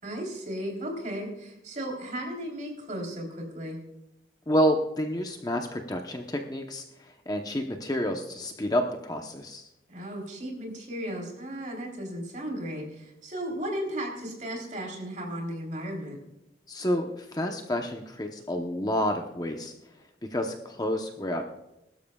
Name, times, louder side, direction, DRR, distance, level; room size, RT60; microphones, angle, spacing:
voice 1, 0.0-3.8 9.9-16.2, equal, 45° right, 1 dB, 3.5 m, -35 dB
voice 2, 4.5-9.6 16.7-19.7 20.3-21.6, equal, 20° left, 3 dB, 0.9 m, -29 dB
21.0 x 12.5 x 2.3 m, 0.91 s
head